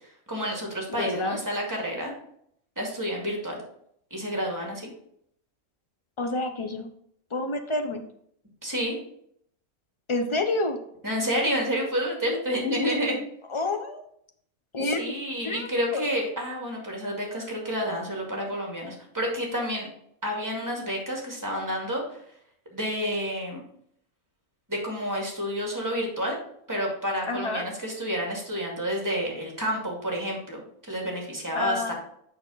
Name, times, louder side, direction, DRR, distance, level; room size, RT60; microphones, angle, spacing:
voice 1, 0.0-2.1 2.8-3.6 4.1-4.9 8.6-9.0 11.0-13.2 14.8-19.9 20.2-22.2 22.7-23.6 24.7-26.4 26.7-31.9, equal, 15° right, -1 dB, 2.1 m, -29 dB
voice 2, 1.0-1.4 6.2-6.9 7.3-8.0 10.1-10.8 13.5-14.1 14.7-15.0 15.4-16.0 27.3-27.6 31.5-31.9, left 2 dB, 30° left, 6 dB, 0.6 m, -28 dB
6.8 x 5.9 x 4.0 m, 0.69 s
omnidirectional pair, 1.5 m